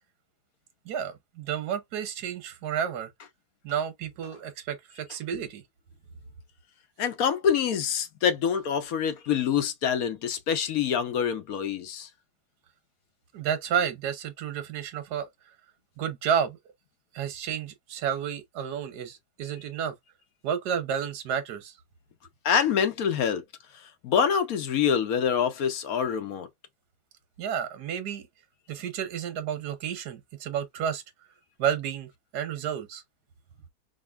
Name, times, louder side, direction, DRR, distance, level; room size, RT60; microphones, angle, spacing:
voice 1, 0.9-3.1 3.6-5.6 13.3-15.3 16.0-16.6 17.1-19.9 20.4-21.7 27.4-28.2 28.7-31.0 31.6-33.0, right 8 dB, 85° right, 1.4 m, -31 dB
voice 2, 7.0-12.1 22.4-23.4 23.7-26.5, left 7 dB, 65° left, 1.2 m, -26 dB
5.0 x 2.4 x 2.2 m
omnidirectional pair, 1.7 m